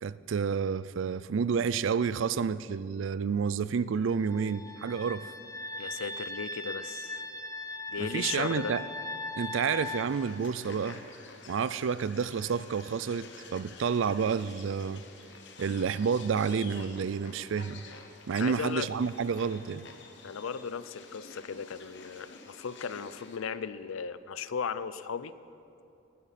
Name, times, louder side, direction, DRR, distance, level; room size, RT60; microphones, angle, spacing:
voice 1, 0.0-5.3 8.0-8.8 9.4-11.0 11.5-15.0 15.6-17.8 18.3-19.8, right 6 dB, 70° right, 0.4 m, -30 dB
sound 1, 4.1-10.1, left 2 dB, 15° left, 0.5 m, -39 dB
voice 2, 5.8-7.2 7.9-8.8 18.4-18.9 20.2-25.3, left 6 dB, 90° left, 0.5 m, -36 dB
sound 2, 9.6-23.4, left 4 dB, 60° left, 1.2 m, -50 dB
19.5 x 12.0 x 4.2 m
head